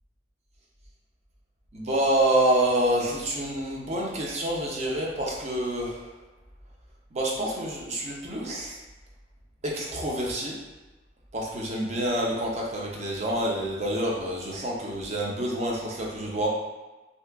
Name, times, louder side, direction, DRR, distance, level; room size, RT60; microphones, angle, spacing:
voice 1, 1.7-6.1 7.1-8.8 9.6-10.6 11.3-16.5, right 1 dB, 35° right, -2 dB, 0.6 m, -27 dB
2.8 x 2.4 x 3.4 m, 1.2 s
head